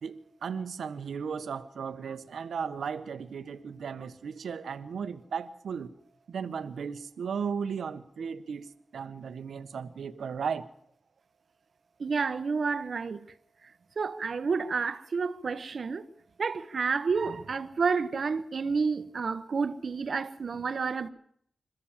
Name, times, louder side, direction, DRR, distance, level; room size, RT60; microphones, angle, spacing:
voice 1, 0.0-5.9 6.3-10.6, right 6 dB, 90° right, 1.3 m, -36 dB
voice 2, 12.0-13.2 14.0-16.1 16.4-21.1, right 5 dB, 60° right, 1.3 m, -30 dB
27.0 x 14.0 x 7.4 m
wide cardioid pair, 105°, 0 cm